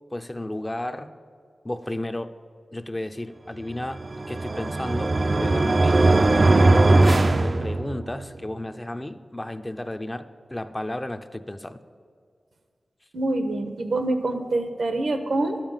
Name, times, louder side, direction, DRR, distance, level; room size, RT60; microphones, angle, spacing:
voice 1, 0.1-1.1 1.6-2.3 2.7-4.0 4.3-6.3 6.6-11.8, left 1 dB, 15° left, 9 dB, 0.5 m, -33 dB
sound 1, 3.9-8.2, right 2 dB, 40° right, 0.4 m, -19 dB
voice 2, 13.1-15.6, right 2 dB, 75° right, 8 dB, 1.2 m, -25 dB
11.0 x 7.3 x 8.9 m, 2.1 s
wide cardioid pair, 110°, 0 cm